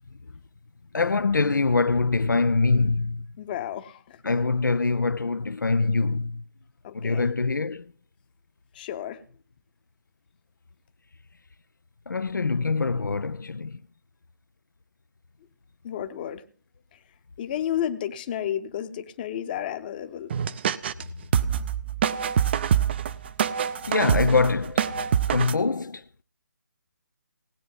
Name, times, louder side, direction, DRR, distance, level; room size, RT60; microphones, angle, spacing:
voice 1, 0.9-3.3 4.2-6.4 6.9-7.9 12.1-13.8 23.8-26.0, left 3 dB, 80° left, 0.5 m, -24 dB
voice 2, 3.4-4.2 6.8-7.4 8.7-9.2 15.8-16.4 16.9-17.0 17.4-20.3 25.5-25.6, left 10 dB, 30° left, 0.9 m, -32 dB
sound 1, 20.3-21.0 21.3-25.5, right 8 dB, 35° right, 0.5 m, -25 dB
19.0 x 8.5 x 3.8 m
figure-of-eight pair, 145°, 10 cm